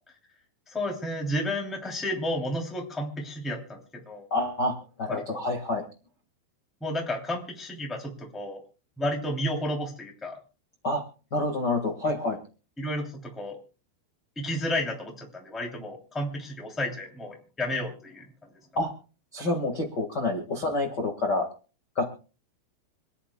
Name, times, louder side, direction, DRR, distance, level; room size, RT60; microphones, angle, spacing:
voice 1, 0.7-4.3 5.1-5.4 6.8-8.6 9.0-10.4 12.8-13.6 14.4-18.5, left 1 dB, ahead, 0 dB, 1.7 m, -32 dB
voice 2, 4.3-5.8 10.8-11.0 11.3-12.4 18.7-18.9 19.3-21.5 21.9-22.0, left 2 dB, 85° left, 2 dB, 0.9 m, -28 dB
27.0 x 10.0 x 2.3 m, 0.35 s
omnidirectional pair, 5.1 m